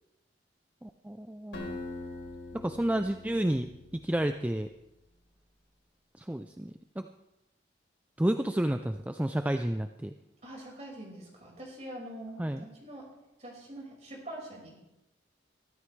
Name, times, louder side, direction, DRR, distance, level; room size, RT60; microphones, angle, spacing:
voice 1, 0.8-1.8 2.5-4.7 6.1-7.1 8.2-10.1 12.4-12.7, right 1 dB, 10° right, 7 dB, 0.4 m, -31 dB
Acoustic guitar, 1.5-4.5, left 2 dB, 85° left, 3.9 m, -43 dB
voice 2, 10.4-13.1 13.4-14.8, right 1 dB, 35° right, -2 dB, 5.3 m, -44 dB
23.0 x 13.0 x 3.3 m, 0.93 s
head